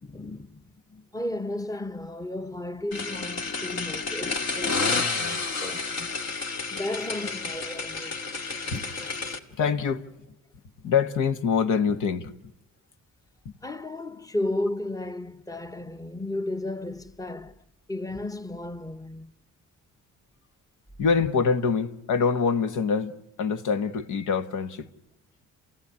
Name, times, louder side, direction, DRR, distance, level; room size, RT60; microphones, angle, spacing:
voice 1, 0.0-0.6 0.9-6.2 6.7-8.2 13.6-17.6 17.9-19.3, left 1 dB, 10° left, 0.9 m, -34 dB
sound 1, 2.9-9.4, left 4 dB, 60° left, 2.1 m, -30 dB
voice 2, 9.6-10.1 10.8-12.3 13.4-13.5 21.0-23.1 23.4-24.9, left 5 dB, 80° left, 1.4 m, -25 dB
27.5 x 16.5 x 9.7 m
cardioid pair, 90°, 30 cm